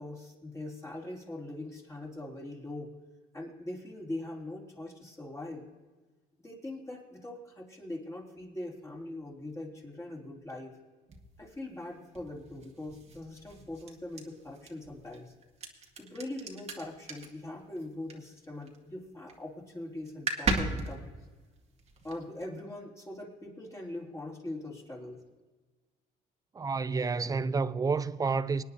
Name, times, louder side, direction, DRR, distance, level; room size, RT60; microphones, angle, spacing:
voice 1, 0.0-2.9 3.3-5.7 6.4-10.8 11.4-15.3 16.0-21.1 22.0-25.2, left 1 dB, 15° left, 3.2 m, -42 dB
sound 1, 11.1-18.8 19.1-19.5 19.8-19.9 20.1-22.4, right 3 dB, 40° right, 1.9 m, -37 dB
voice 2, 26.5-28.6, right 4 dB, 20° right, 0.5 m, -29 dB
25.5 x 9.8 x 2.8 m
cardioid pair, 110°, 17 cm